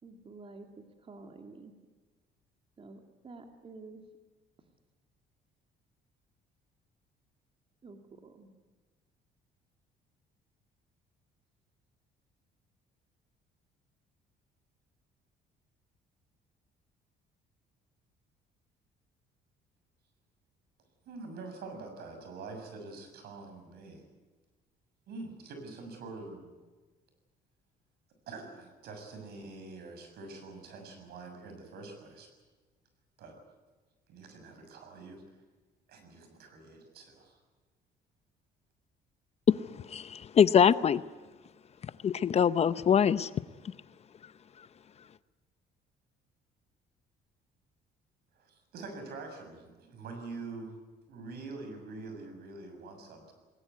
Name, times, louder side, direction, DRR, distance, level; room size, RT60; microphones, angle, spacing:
voice 1, 0.0-1.7 2.8-4.0 7.8-8.5, right 3 dB, 35° right, 2.5 m, -50 dB
voice 2, 21.0-24.1 25.1-26.5 28.3-32.3 33.2-33.4 34.1-35.2 35.9-37.4 48.3-50.8 51.1-53.3, right 3 dB, 70° right, 6.8 m, -45 dB
voice 3, 39.9-41.0 42.0-43.3, left 8 dB, 40° left, 0.7 m, -23 dB
20.5 x 20.0 x 9.6 m
cardioid pair, 110°, 17 cm